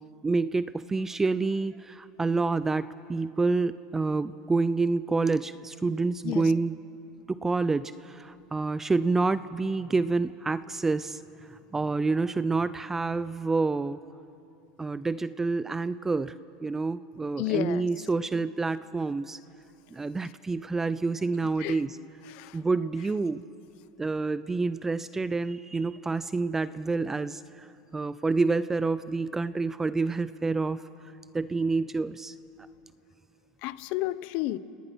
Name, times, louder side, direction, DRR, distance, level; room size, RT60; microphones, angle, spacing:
voice 1, 0.2-6.8 7.3-11.2 11.5-14.0 14.8-16.3 16.6-19.4 19.9-22.0 22.5-23.4 24.0-30.8 31.3-32.3, right 3 dB, 15° right, 15 dB, 0.5 m, -28 dB
voice 2, 17.4-17.8 21.6-21.8 22.3-22.6 33.6-34.6, left 17 dB, 60° left, 17 dB, 0.8 m, -31 dB
30.0 x 19.0 x 6.2 m, 2.8 s
supercardioid pair, 100°, 3 cm